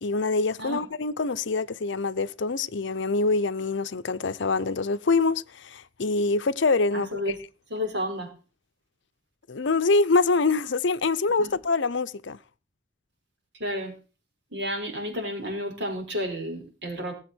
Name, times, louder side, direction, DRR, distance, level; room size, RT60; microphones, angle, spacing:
voice 1, 0.0-7.1 9.5-12.4, left 3 dB, 65° left, 0.6 m, -25 dB
voice 2, 6.9-7.4 7.7-8.3 11.4-11.5 13.6-14.0 14.5-17.1, left 1 dB, 60° right, 5.3 m, -31 dB
17.5 x 7.4 x 6.2 m
head